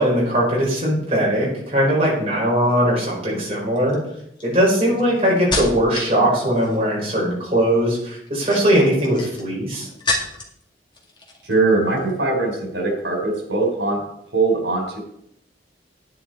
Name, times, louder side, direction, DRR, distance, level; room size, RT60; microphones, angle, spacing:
voice 1, 0.0-4.0 4.4-9.9, equal, 35° right, -5 dB, 4.9 m, -20 dB
sound 1, 2.7-3.0 3.8-6.2 6.4-7.0 8.2-10.6 10.9-11.6 11.9-12.1, left 2 dB, 25° left, 2.1 m, -30 dB
voice 2, 11.5-14.0 14.3-15.0, right 3 dB, 80° right, 2 dB, 3.8 m, -21 dB
10.0 x 9.6 x 4.5 m, 0.74 s
head